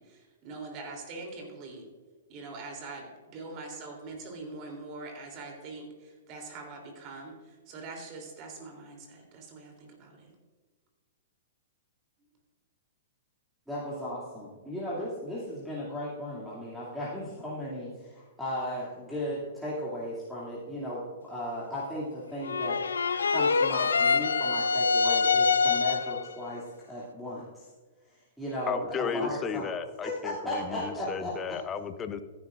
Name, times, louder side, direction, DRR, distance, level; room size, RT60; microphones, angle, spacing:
voice 1, 0.0-1.8 2.3-10.3, right 3 dB, 40° right, 2 dB, 3.1 m, -43 dB
voice 2, 13.7-22.8 23.3-27.6 28.1-29.7 30.0-31.6, equal, ahead, -8 dB, 2.6 m, -36 dB
sound 1, 22.4-26.3, left 5 dB, 80° left, 0.5 m, -25 dB
voice 3, 28.7-32.2, left 6 dB, 20° left, 11 dB, 0.7 m, -34 dB
14.5 x 10.5 x 2.5 m, 1.4 s
hypercardioid pair, 120°, 0 cm